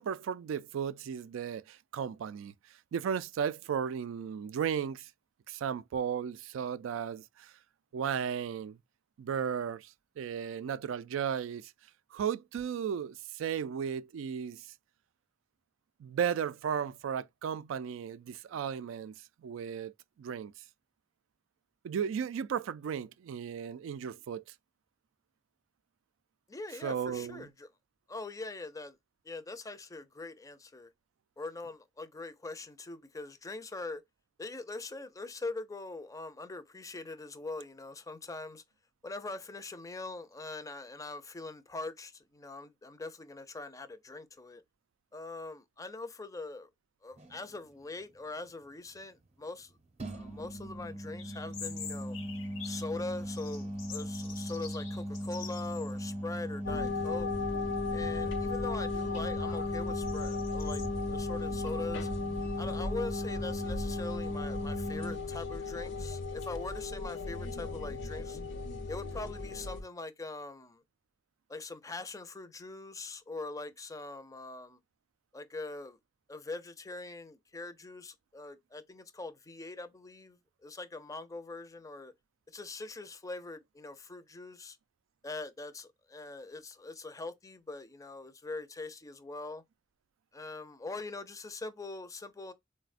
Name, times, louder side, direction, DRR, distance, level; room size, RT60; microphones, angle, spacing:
voice 1, 0.0-2.5 2.9-5.1 5.5-7.5 7.9-8.8 9.2-11.7 12.1-14.7 16.0-19.2 19.4-20.5 21.8-24.4 26.8-27.5, right 7 dB, 85° right, 0.3 m, -35 dB
voice 2, 26.5-27.7 28.1-29.0 29.3-30.9 31.4-34.0 34.4-38.6 39.0-44.6 45.1-46.7 47.0-49.7 50.1-52.2 52.6-57.3 57.9-62.1 62.6-68.4 68.9-70.8 71.5-74.8 75.3-76.0 76.3-82.1 82.5-84.8 85.2-89.6 90.3-92.5, left 3 dB, 15° left, 0.4 m, -42 dB
sound 1, 47.2-47.4 50.0-65.1, equal, 35° right, 0.7 m, -38 dB
sound 2, 51.2-52.9 53.3-56.0 56.3-56.4 57.2-57.6 58.0-60.9, left 7 dB, 85° left, 1.0 m, -47 dB
sound 3, 56.7-69.8, left 4 dB, 65° left, 0.5 m, -36 dB
4.0 x 2.1 x 2.4 m
head